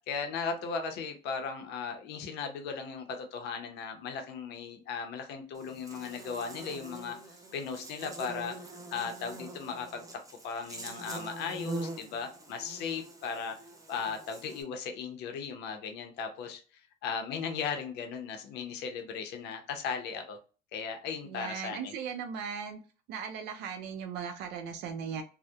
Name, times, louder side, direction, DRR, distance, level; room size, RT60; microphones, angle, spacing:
voice 1, 0.1-10.1 10.4-13.6 13.9-20.4 20.7-21.9, left 5 dB, 85° left, 5 dB, 0.6 m, -37 dB
Buzz, 5.6-14.6, right 2 dB, 20° right, 0.5 m, -44 dB
voice 2, 21.2-22.8 23.1-25.2, right 7 dB, 85° right, 6 dB, 0.4 m, -38 dB
2.7 x 2.0 x 2.2 m, 0.37 s
cardioid pair, 110°, 17 cm